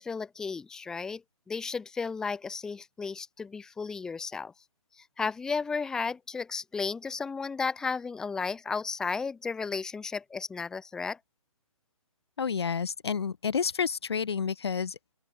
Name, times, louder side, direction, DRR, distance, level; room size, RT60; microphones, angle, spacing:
voice 1, 0.0-4.5 5.0-11.2, left 5 dB, 5° left, 2.1 m, -34 dB
voice 2, 12.4-15.2, left 6 dB, 45° left, 1.8 m, -30 dB
open air
hypercardioid pair, 170°, 18 cm